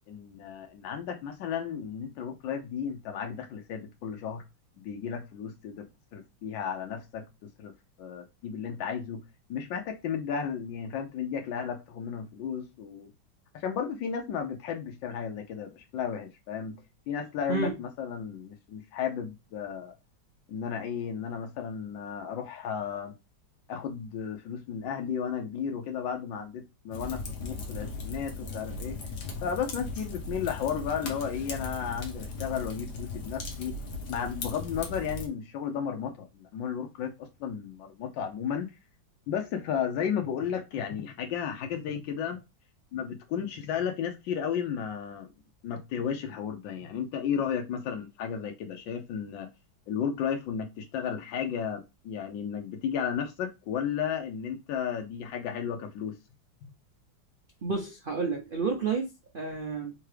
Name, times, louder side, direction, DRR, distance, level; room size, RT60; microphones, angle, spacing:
voice 1, 0.1-4.4 4.8-7.2 7.6-7.7 8.0-9.2 9.5-13.1 13.5-16.7 17.1-19.9 20.5-23.1 23.7-29.0 29.4-33.7 34.1-38.7 39.3-42.4 42.9-45.3 45.6-49.5 49.9-56.1, left 7 dB, 80° left, 1.4 m, -33 dB
Fire, 26.9-35.3, left 3 dB, 65° left, 1.4 m, -38 dB
voice 2, 57.6-59.1 59.3-59.9, right 4 dB, 80° right, 0.4 m, -30 dB
3.7 x 3.4 x 3.3 m
omnidirectional pair, 2.0 m